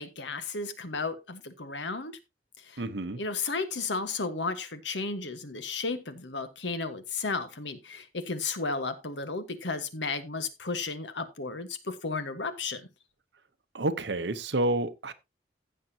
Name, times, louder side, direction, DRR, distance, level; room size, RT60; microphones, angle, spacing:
voice 1, 0.0-2.1 2.6-2.8 3.1-12.8, left 4 dB, 85° left, 1.4 m, -33 dB
voice 2, 2.8-3.2 13.7-15.1, right 2 dB, 80° right, 1.0 m, -29 dB
15.5 x 6.7 x 2.8 m
head